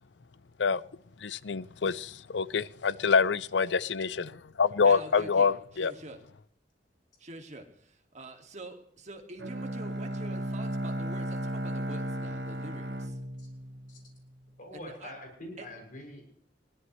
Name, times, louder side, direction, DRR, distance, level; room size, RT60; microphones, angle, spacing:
voice 1, 1.2-5.9, left 5 dB, 85° left, 0.6 m, -26 dB
voice 2, 4.8-6.2 7.2-13.2 14.7-15.1 15.6-15.7, right 1 dB, 40° right, 2.2 m, -46 dB
Bowed string instrument, 9.4-14.4, right 1 dB, 70° right, 1.5 m, -35 dB
voice 3, 14.6-16.2, left 1 dB, 50° left, 6.9 m, -44 dB
22.0 x 17.5 x 3.2 m
head